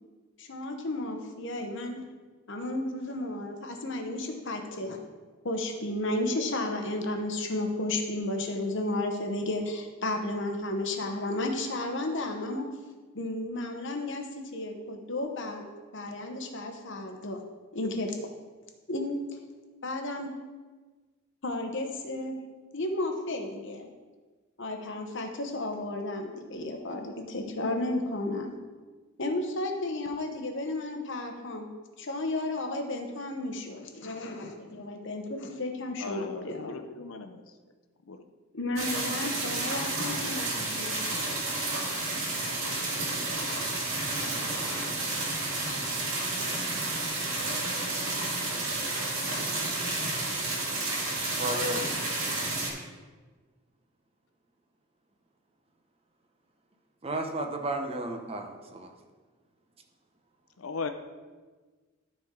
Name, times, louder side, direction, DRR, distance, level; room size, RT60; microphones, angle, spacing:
voice 1, 0.4-2.1 2.5-5.0 5.4-12.7 13.1-14.3 14.5-15.6 15.9-17.4 17.7-18.2 18.9-19.2 19.8-20.3 21.4-22.4 22.7-23.9 24.6-28.5 29.2-31.7 32.0-36.7 38.5-41.3, left 2 dB, 60° left, 4 dB, 1.0 m, -33 dB
voice 2, 36.0-37.4 38.1-38.2 60.6-60.9, left 4 dB, 80° left, 8 dB, 0.6 m, -37 dB
sound 1, 38.8-52.7, right 2 dB, 75° right, 1.8 m, -31 dB
voice 3, 51.3-52.0 57.0-58.9, right 1 dB, 30° right, 4 dB, 0.8 m, -33 dB
13.0 x 4.4 x 3.8 m, 1.4 s
head